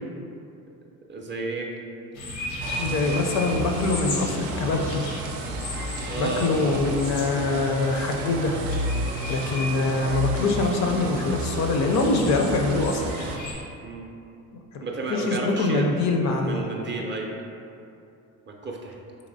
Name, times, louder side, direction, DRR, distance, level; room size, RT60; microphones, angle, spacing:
voice 1, 1.1-1.7 6.0-6.5 13.8-14.1 14.8-15.9 16.1-17.3 18.5-19.0, right 3 dB, 30° right, 0 dB, 0.4 m, -32 dB
sound 1, 2.1-13.5, left 1 dB, 80° left, 0.8 m, -36 dB
sound 2, 2.6-13.4, right 1 dB, 85° right, 0.5 m, -32 dB
voice 2, 2.8-5.0 6.2-8.6 9.3-13.1 14.7-14.8 15.1-16.7, left 3 dB, 45° left, 3 dB, 0.5 m, -24 dB
4.0 x 2.9 x 2.6 m, 2.6 s
supercardioid pair, 75°, 38 cm